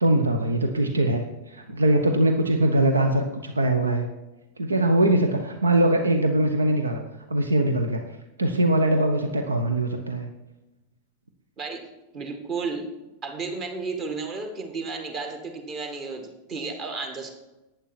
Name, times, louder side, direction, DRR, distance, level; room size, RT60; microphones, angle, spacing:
voice 1, 0.0-4.1 4.6-7.0 7.3-8.0 8.4-10.3, right 1 dB, 75° right, 6 dB, 1.0 m, -22 dB
voice 2, 12.1-12.8 13.2-16.2 16.5-17.3, right 4 dB, 35° right, 5 dB, 1.9 m, -32 dB
11.0 x 9.6 x 4.2 m, 1.0 s
figure-of-eight pair, 90°, 0 cm